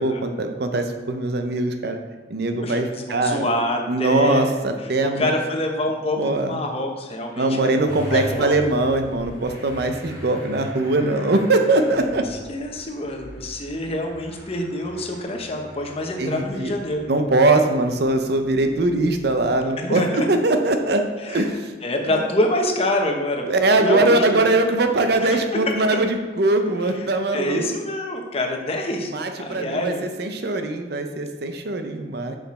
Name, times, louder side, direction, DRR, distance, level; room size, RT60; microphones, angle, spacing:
voice 1, 0.0-2.0 2.3-3.5 3.9-5.3 6.2-6.6 7.4-12.3 16.2-16.7 17.1-21.7 22.1-22.2 23.5-27.7 29.0-32.4, right 2 dB, 60° right, 6 dB, 0.7 m, -21 dB
voice 2, 2.6-4.5 5.0-7.7 8.1-8.5 12.5-17.0 19.8-20.3 21.2-21.5 21.8-23.5 23.8-24.4 25.2-25.6 27.3-29.1 29.4-30.1, left 1 dB, 35° left, 2 dB, 0.9 m, -26 dB
Motor vehicle (road) / Engine starting, 7.9-19.5, left 1 dB, 20° right, 2.2 m, -40 dB
6.2 x 5.7 x 4.2 m, 1.3 s
head